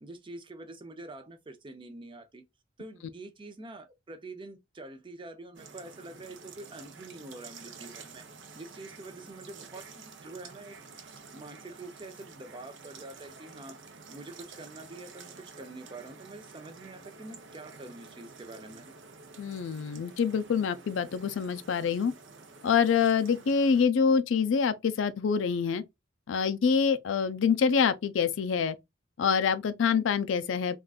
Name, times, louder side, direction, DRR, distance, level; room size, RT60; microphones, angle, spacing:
voice 1, 0.0-2.4 2.8-8.3 8.5-13.8 14.1-18.9, right 2 dB, 25° right, 0.5 m, -46 dB
sound 1, 5.5-23.9, right 4 dB, 60° right, 0.7 m, -50 dB
voice 2, 19.4-22.1 22.6-25.8 26.3-28.8 29.2-30.8, left 6 dB, 65° left, 0.4 m, -26 dB
3.5 x 2.4 x 2.3 m
head